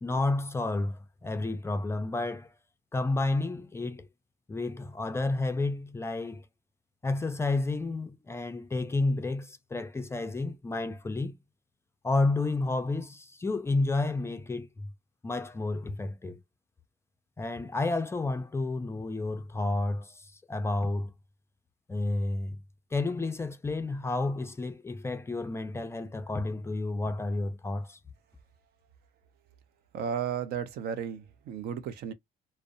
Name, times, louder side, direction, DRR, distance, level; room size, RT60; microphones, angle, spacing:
voice 1, 0.0-2.5 2.9-4.1 4.5-6.4 7.0-11.4 12.0-14.9 15.2-16.4 17.4-21.1 21.9-22.6 22.9-28.0, left 2 dB, 15° left, 0.3 m, -31 dB
voice 2, 29.9-32.1, right 8 dB, 70° right, 0.5 m, -34 dB
2.4 x 2.0 x 2.6 m
cardioid pair, 110°, 17 cm